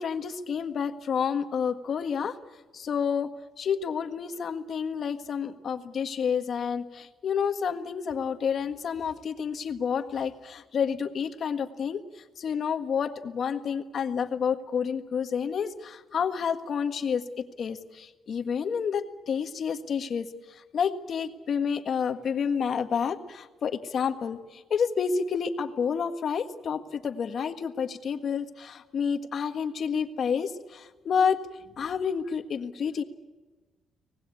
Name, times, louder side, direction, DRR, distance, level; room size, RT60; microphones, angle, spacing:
voice 1, 0.0-2.3 2.7-3.3 3.6-12.0 12.4-17.2 17.6-20.2 20.7-24.4 24.7-31.4 31.8-33.0, left 6 dB, 55° left, 8 dB, 1.6 m, -29 dB
25.0 x 19.0 x 8.5 m, 1.2 s
cardioid pair, 125°, 0 cm